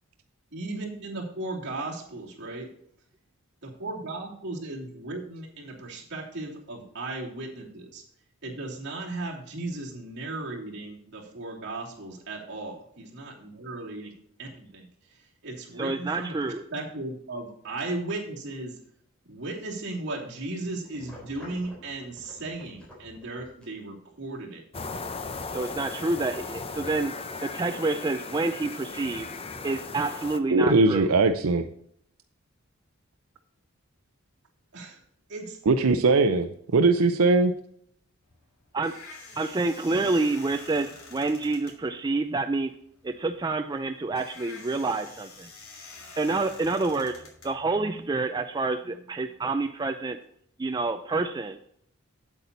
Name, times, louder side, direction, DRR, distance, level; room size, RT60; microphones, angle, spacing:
voice 1, 0.5-2.7 3.8-8.0 8.4-14.1 14.4-18.8 19.2-24.6 29.1-29.3 34.7-35.0 35.3-35.6, right 2 dB, 55° right, -3 dB, 2.9 m, -36 dB
voice 2, 15.8-16.6 25.5-27.1 27.4-29.3 29.6-31.1 38.7-39.0 39.4-42.7 43.0-45.5 46.2-47.1 47.4-50.2 50.6-51.6, right 3 dB, 20° right, 7 dB, 0.4 m, -28 dB
sound 1, 20.8-23.6, equal, 5° left, 3.7 m, -49 dB
sound 2, 24.7-30.4, left 4 dB, 25° left, 0.6 m, -37 dB
voice 3, 30.5-31.7 35.7-37.5, right 3 dB, 85° right, 7 dB, 0.5 m, -20 dB
sound 3, 38.2-48.2, left 3 dB, 80° left, 3.1 m, -47 dB
8.3 x 8.3 x 4.0 m, 0.67 s
head